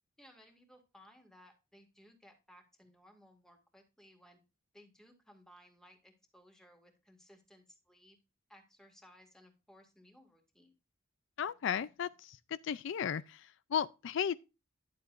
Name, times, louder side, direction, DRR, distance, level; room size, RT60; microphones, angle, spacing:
voice 1, 0.2-4.4 4.7-8.2 8.5-10.7, equal, 5° left, 2.0 m, -61 dB
voice 2, 11.4-14.3, left 8 dB, 65° left, 0.4 m, -35 dB
11.5 x 7.6 x 2.5 m
head